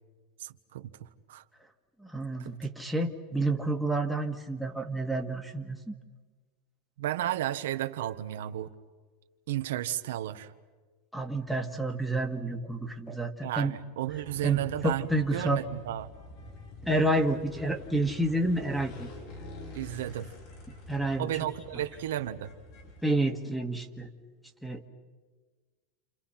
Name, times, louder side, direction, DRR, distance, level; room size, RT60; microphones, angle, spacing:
voice 1, 0.4-1.4 2.4-2.5 7.0-8.7 9.5-10.5 13.4-16.1 19.7-20.3 21.2-22.5, right 13 dB, 80° right, 9 dB, 1.3 m, -33 dB
voice 2, 2.1-5.9 11.1-13.7 14.4-15.6 16.8-19.1 20.9-21.3 23.0-24.1 24.6-24.8, right 1 dB, ahead, 2 dB, 1.9 m, -29 dB
sound 1, 14.1-23.0, left 2 dB, 60° left, 7.6 m, -47 dB
29.5 x 28.5 x 5.8 m, 1.4 s
supercardioid pair, 130°, 0 cm